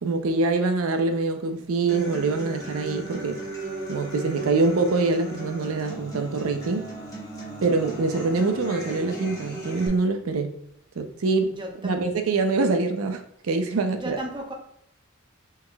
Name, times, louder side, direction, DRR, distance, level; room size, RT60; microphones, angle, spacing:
voice 1, 0.0-3.4 3.9-6.9 7.6-10.6 11.0-11.6 11.8-14.2, right 3 dB, 85° right, 6 dB, 0.5 m, -24 dB
Human voice / Acoustic guitar, 1.9-9.9, right 1 dB, 15° left, 1.2 m, -36 dB
voice 2, 11.5-12.0 13.9-14.5, right 1 dB, 25° right, 1 dB, 0.8 m, -34 dB
4.2 x 4.2 x 2.2 m, 0.75 s
head